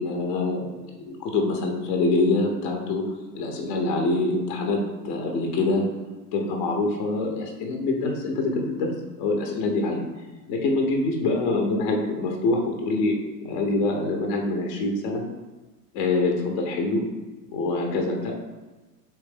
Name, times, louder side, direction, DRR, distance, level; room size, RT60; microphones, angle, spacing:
voice 1, 0.0-3.0 3.3-4.8 5.0-5.8 6.3-10.0 10.5-13.2 13.4-15.2 15.9-17.0 17.5-18.3, left 2 dB, 30° left, 2 dB, 0.5 m, -25 dB
3.1 x 3.0 x 3.4 m, 1.2 s
figure-of-eight pair, 100°, 50 cm